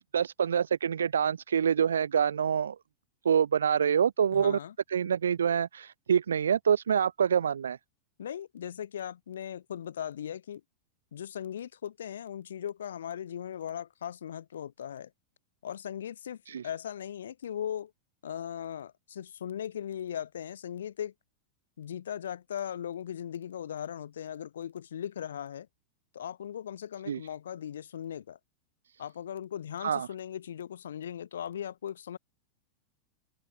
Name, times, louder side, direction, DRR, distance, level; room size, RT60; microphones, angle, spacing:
voice 1, 0.1-2.8 3.2-4.6 4.9-7.8 16.5-16.6 27.1-27.2 29.8-30.1, right 8 dB, 70° right, 0.4 m, -26 dB
voice 2, 4.3-4.7 8.2-10.6 11.1-15.1 15.6-16.4 16.6-17.9 18.2-21.1 21.8-25.7 26.1-28.4 29.0-32.2, left 9 dB, 65° left, 4.7 m, -38 dB
figure-of-eight pair, 90°, 0 cm